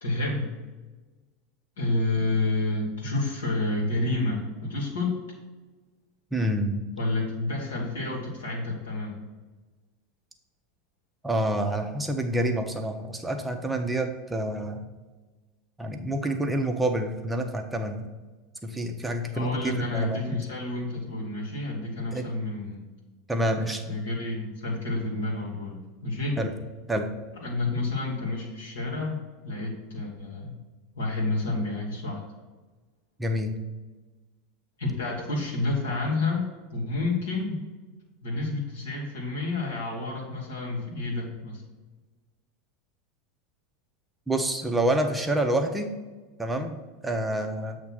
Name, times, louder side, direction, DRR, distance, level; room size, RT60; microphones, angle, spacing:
voice 1, 0.0-0.5 1.8-5.1 7.0-9.2 19.3-22.8 23.6-26.4 27.4-30.5 30.9-32.2 34.8-36.5 36.7-37.6 38.2-41.6, left 2 dB, 70° left, -4 dB, 1.7 m, -29 dB
voice 2, 6.3-6.9 11.2-14.8 15.8-18.1 18.6-20.2 22.1-22.3 23.3-23.8 26.4-26.5 26.9-27.1 33.2-33.5 44.3-45.9 46.4-47.8, right 1 dB, 5° right, 4 dB, 0.8 m, -27 dB
8.1 x 2.9 x 6.0 m, 1.3 s
figure-of-eight pair, 80°, 0 cm